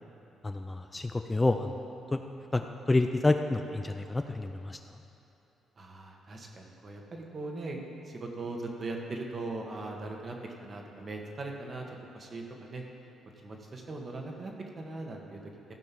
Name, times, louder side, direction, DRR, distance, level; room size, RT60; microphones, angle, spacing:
voice 1, 0.4-1.7 2.1-2.2 2.5-4.8, left 2 dB, 20° left, 6 dB, 0.5 m, -28 dB
voice 2, 5.8-7.8 8.1-11.8 12.1-12.8 13.4-15.4, right 2 dB, 40° right, 1 dB, 1.5 m, -39 dB
15.0 x 5.4 x 6.0 m, 3.0 s
cardioid pair, 90°, 0 cm